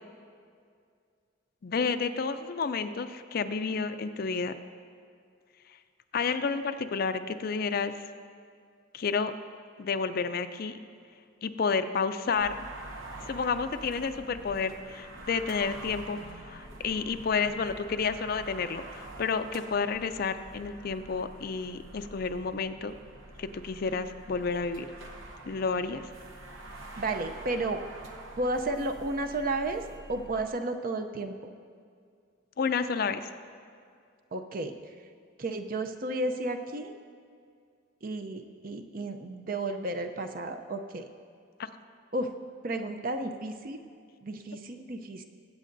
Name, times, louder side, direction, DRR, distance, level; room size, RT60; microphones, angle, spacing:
voice 1, 1.6-4.5 6.1-8.0 8.9-9.3 9.8-10.8 11.4-12.6 13.3-22.9 23.4-24.9 25.5-26.0 32.6-33.3 41.6-41.7, left 5 dB, 50° left, 10 dB, 0.4 m, -30 dB
sound 1, 12.3-30.5, right 2 dB, 80° right, 0.9 m, -46 dB
voice 2, 27.0-27.8 28.4-29.8 30.1-31.3 34.3-34.7 35.4-36.9 38.0-41.1 42.1-42.3 42.6-43.8 44.2-45.2, right 2 dB, 45° right, 6 dB, 0.6 m, -32 dB
21.5 x 8.3 x 2.6 m, 2.2 s
head